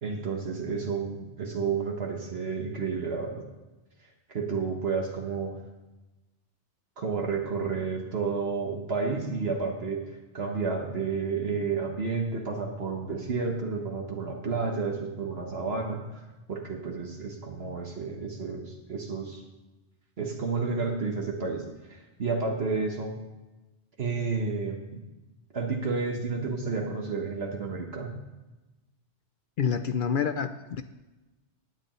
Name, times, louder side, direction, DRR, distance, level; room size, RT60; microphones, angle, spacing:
voice 1, 0.0-3.4 4.0-5.5 7.0-19.4 20.2-23.1 24.0-25.0 25.5-28.1, right 4 dB, 60° right, 1 dB, 1.4 m, -31 dB
voice 2, 29.6-30.8, left 7 dB, 60° left, 10 dB, 0.6 m, -28 dB
16.5 x 9.5 x 3.1 m, 1.1 s
omnidirectional pair, 1.2 m